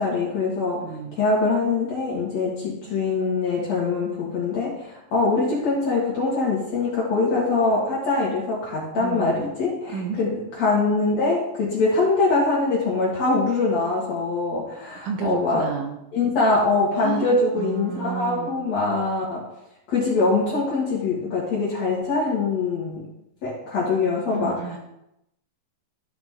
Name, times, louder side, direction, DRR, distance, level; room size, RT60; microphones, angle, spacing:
voice 1, 0.0-0.8 1.2-10.3 10.6-15.7 16.1-19.4 19.9-23.1 23.4-24.5, left 3 dB, 60° left, -6 dB, 2.6 m, -23 dB
voice 2, 0.8-1.2 8.9-9.3 9.9-10.2 15.0-16.0 16.9-18.7 24.3-24.8, right 6 dB, 75° right, 3 dB, 2.5 m, -31 dB
13.0 x 5.0 x 3.6 m, 0.85 s
omnidirectional pair, 3.8 m